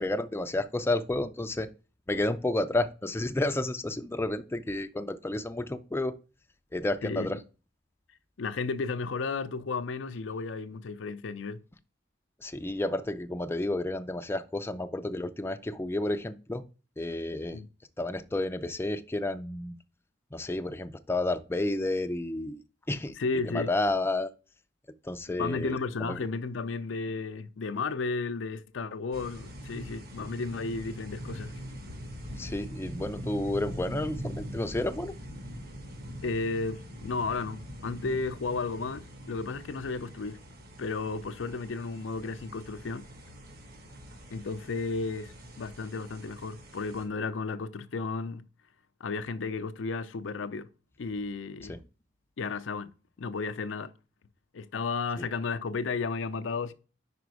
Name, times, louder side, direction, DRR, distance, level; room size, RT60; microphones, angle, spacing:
voice 1, 0.0-1.7 2.1-6.2 6.7-7.4 12.4-16.6 17.0-17.6 18.0-19.8 20.3-22.6 22.9-23.2 23.5-24.3 25.0-26.2 32.3-35.2 51.7-51.8 55.2-55.3, left 2 dB, 15° left, 0.4 m, -31 dB
voice 2, 8.4-11.6 17.5-17.7 23.2-23.7 25.4-31.6 36.2-40.4 40.8-43.1 44.3-48.5 49.0-50.7 51.0-51.8 52.4-52.9 53.2-53.9 54.5-56.7, left 4 dB, 80° left, 0.5 m, -33 dB
sound 1, 29.1-47.1, equal, 55° right, 1.6 m, -43 dB
5.1 x 5.0 x 4.7 m
head